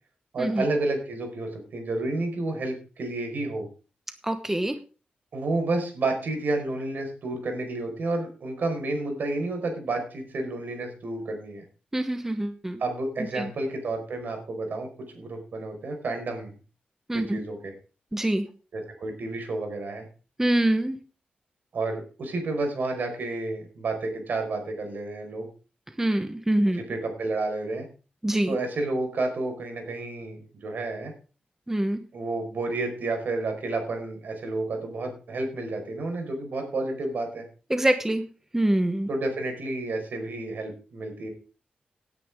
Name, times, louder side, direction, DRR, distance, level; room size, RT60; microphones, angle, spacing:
voice 1, 0.3-3.7 5.3-11.6 12.8-14.9 15.1-16.5 17.1-17.7 18.7-20.1 21.7-25.5 26.7-27.9 28.5-31.1 32.1-37.5 39.1-41.3, right 2 dB, 70° right, 4 dB, 4.9 m, -30 dB
voice 2, 4.2-4.8 11.9-12.8 13.4-13.5 17.1-17.4 18.1-18.5 20.4-21.0 26.0-26.8 28.2-28.5 31.7-32.0 37.7-38.2 38.5-39.1, right 1 dB, 10° right, 9 dB, 1.1 m, -25 dB
17.5 x 9.6 x 3.6 m, 0.35 s
wide cardioid pair, 100°, 3 cm